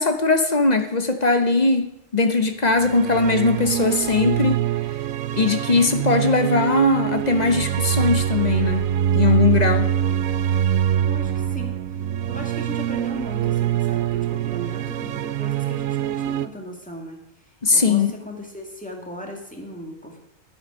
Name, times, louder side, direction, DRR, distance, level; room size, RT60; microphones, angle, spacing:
voice 1, 0.0-4.6 5.4-8.9 9.1-9.9 17.6-18.1, left 3 dB, 40° left, 7 dB, 0.8 m, -20 dB
sound 1, 2.6-16.5, right 10 dB, 80° right, 1.0 m, -24 dB
voice 2, 11.0-11.8 12.3-17.2 17.7-20.2, equal, 5° left, 1 dB, 2.0 m, -37 dB
11.0 x 7.8 x 6.3 m, 0.80 s
omnidirectional pair, 1.4 m